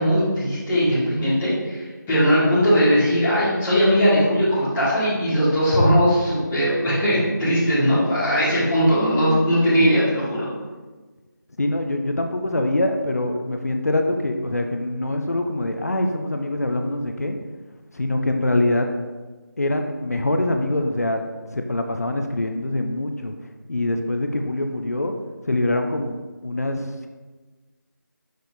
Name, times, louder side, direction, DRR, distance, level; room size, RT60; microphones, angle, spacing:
voice 1, 0.0-10.5, equal, 5° left, -15 dB, 0.6 m, -19 dB
voice 2, 11.6-17.4 17.9-18.9 19.6-21.2 21.5-23.3 23.7-25.1 25.5-26.2 26.4-27.1, left 1 dB, 50° left, 5 dB, 0.5 m, -24 dB
6.1 x 4.6 x 3.3 m, 1.3 s
figure-of-eight pair, 170°, 11 cm